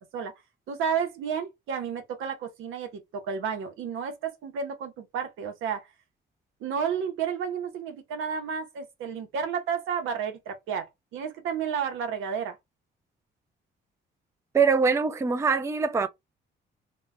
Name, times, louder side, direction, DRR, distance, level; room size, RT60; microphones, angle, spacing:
voice 1, 0.7-5.9 6.6-12.6, right 7 dB, 90° right, 0.7 m, -31 dB
voice 2, 14.5-16.1, right 5 dB, 15° right, 0.3 m, -23 dB
2.2 x 2.1 x 3.5 m
cardioid pair, 90°, 20 cm